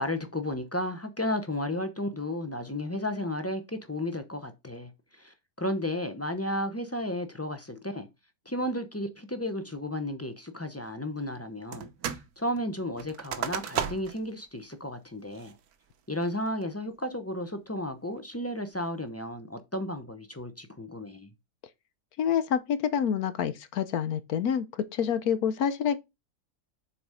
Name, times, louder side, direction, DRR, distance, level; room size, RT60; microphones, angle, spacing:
voice 1, 0.0-8.1 8.5-15.6 16.1-21.3, left 1 dB, 15° left, 0.5 m, -33 dB
sound 1, 11.7-12.3 12.6-14.3 14.7-14.8 15.3-15.7 16.2-16.6, right 8 dB, 70° right, 1.3 m, -34 dB
voice 2, 22.2-26.0, left 8 dB, 70° left, 1.1 m, -27 dB
7.0 x 4.2 x 4.9 m
omnidirectional pair, 1.7 m